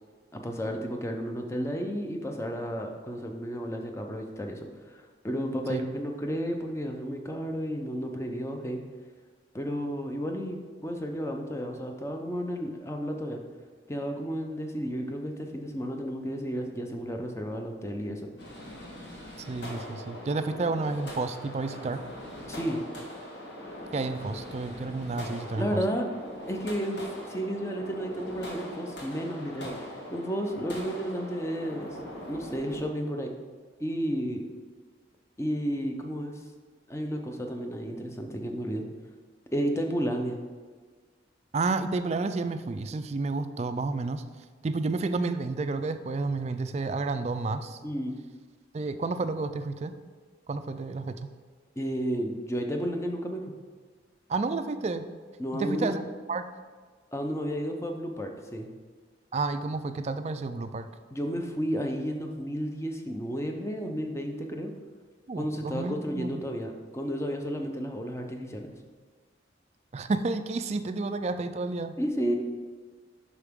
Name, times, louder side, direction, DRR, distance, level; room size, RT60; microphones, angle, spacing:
voice 1, 0.3-8.8 9.5-13.4 13.9-18.2 22.5-22.8 25.6-26.0 26.5-27.0 27.3-32.0 32.3-33.3 33.8-34.5 35.4-36.4 36.9-38.8 39.5-40.4 47.8-48.2 51.8-53.4 55.4-55.9 57.1-58.7 61.1-64.7 65.4-68.7 72.0-72.4, equal, 15° left, 3 dB, 0.6 m, -32 dB
sound 1, 18.4-32.8, left 1 dB, 70° left, 1.6 m, -41 dB
voice 2, 19.4-22.0 23.9-25.7 41.5-44.2 44.6-47.8 48.7-50.0 50.5-51.3 54.3-55.1 55.5-56.0 56.3-56.5 59.3-60.9 65.3-66.4 69.9-71.9, right 3 dB, 35° right, 10 dB, 0.3 m, -31 dB
8.1 x 5.9 x 3.6 m, 1.5 s
head